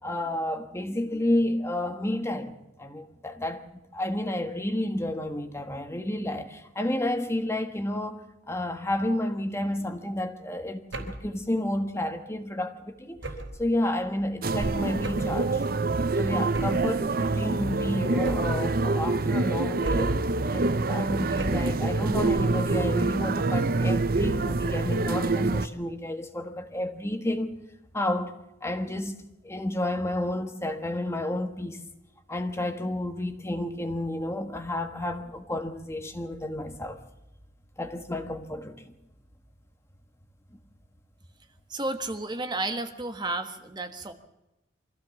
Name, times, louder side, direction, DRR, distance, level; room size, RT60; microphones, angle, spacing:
voice 1, 0.0-3.6 3.9-13.2 13.6-15.6 16.2-20.2 20.5-27.5 27.9-28.3 28.6-29.1 29.4-31.8 32.3-37.0 37.8-38.9, left 1 dB, 15° left, 1.4 m, -31 dB
sound 1, 10.9-11.3 13.2-13.7 15.0-15.4 16.5-16.9 18.2-18.7 19.8-20.3 21.4-21.8, right 1 dB, 80° right, 3.7 m, -34 dB
sound 2, 14.4-25.7, right 3 dB, 50° right, 0.8 m, -26 dB
voice 2, 41.7-44.1, right 2 dB, 25° right, 1.4 m, -32 dB
25.0 x 15.5 x 7.2 m
head